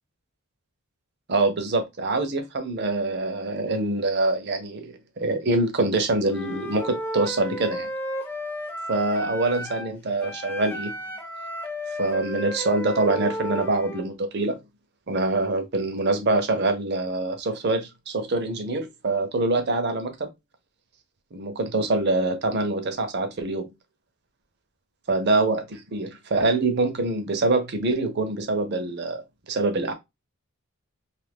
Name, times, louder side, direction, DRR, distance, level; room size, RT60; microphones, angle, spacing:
voice 1, 1.3-7.9 8.9-10.9 12.0-14.6 15.1-20.3 21.3-23.7 25.1-29.2 29.5-29.9, right 2 dB, 50° right, 0.6 m, -25 dB
Wind instrument woodwind instrument, 6.3-9.9 10.2-14.1, equal, 10° left, 0.4 m, -33 dB
2.7 x 2.5 x 3.4 m
head